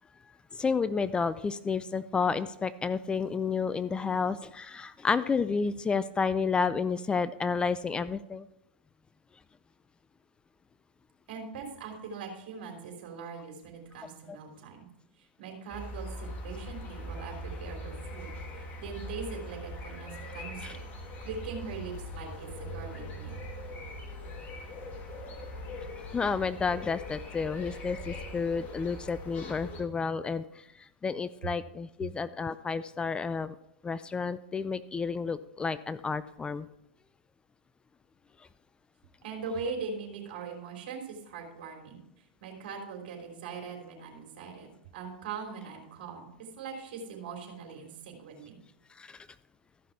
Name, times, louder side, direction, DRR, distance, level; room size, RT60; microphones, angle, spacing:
voice 1, 0.5-8.5 14.3-14.4 20.6-20.8 26.0-33.6 33.8-36.7 38.4-38.5 48.9-49.3, left 5 dB, 15° left, 15 dB, 0.4 m, -31 dB
voice 2, 11.3-14.9 15.4-18.3 18.5-20.8 21.2-23.4 39.2-42.0 42.4-46.3 46.6-48.6, right 5 dB, 65° right, 3 dB, 3.2 m, -41 dB
sound 1, 15.7-29.8, left 1 dB, 35° left, 2.1 m, -41 dB
14.0 x 5.9 x 4.6 m, 0.82 s
hypercardioid pair, 105°, 6 cm